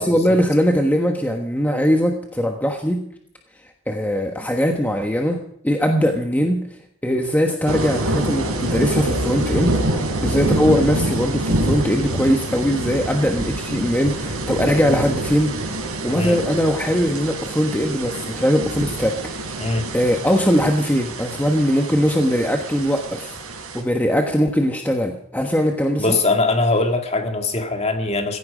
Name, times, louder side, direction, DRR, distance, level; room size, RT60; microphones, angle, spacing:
voice 1, 0.0-3.0 3.9-6.6 7.0-9.8 10.2-15.8 16.0-19.6 19.9-23.4 23.7-26.2, equal, 10° left, 3 dB, 1.2 m, -20 dB
sound 1, 7.7-23.8, right 1 dB, 75° right, 5.2 m, -26 dB
voice 2, 16.1-16.4 19.6-19.9 26.0-28.4, left 2 dB, 30° left, 5 dB, 2.0 m, -21 dB
16.5 x 15.5 x 5.0 m, 0.69 s
head